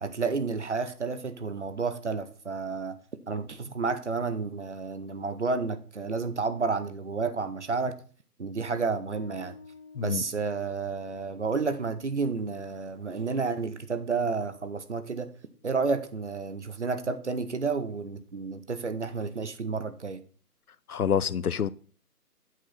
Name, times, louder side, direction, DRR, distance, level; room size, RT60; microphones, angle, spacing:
voice 1, 0.0-3.0 3.3-8.0 8.4-9.6 10.0-15.3 15.6-20.2, right 4 dB, 45° right, 0.8 m, -31 dB
Bass guitar, 9.1-16.3, left 4 dB, 45° left, 1.5 m, -55 dB
voice 2, 20.9-21.7, left 8 dB, 65° left, 0.6 m, -27 dB
7.9 x 4.7 x 5.8 m
figure-of-eight pair, 150°, 48 cm